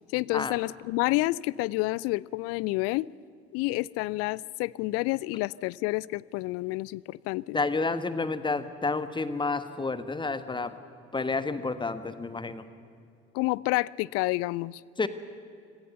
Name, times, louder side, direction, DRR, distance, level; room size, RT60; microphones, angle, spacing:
voice 1, 0.1-3.1 3.5-7.6 13.3-14.8, left 21 dB, 50° left, 24 dB, 0.5 m, -29 dB
voice 2, 7.5-10.7 11.1-12.6 15.0-15.1, left 3 dB, 15° left, 12 dB, 1.3 m, -30 dB
25.5 x 17.5 x 6.9 m, 2.4 s
figure-of-eight pair, 55°, 31 cm